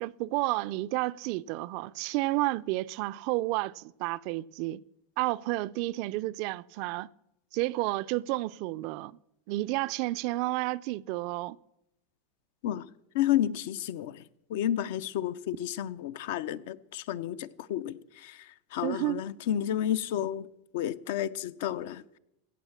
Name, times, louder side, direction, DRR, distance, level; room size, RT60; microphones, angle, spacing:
voice 1, 0.0-4.8 5.2-7.1 7.5-9.2 9.5-11.6 18.8-19.2, right 19 dB, 55° right, 0.4 m, -31 dB
voice 2, 13.1-14.2 14.5-20.5 20.7-22.2, left 11 dB, 70° left, 0.6 m, -31 dB
16.5 x 6.5 x 7.2 m
supercardioid pair, 130°, 0 cm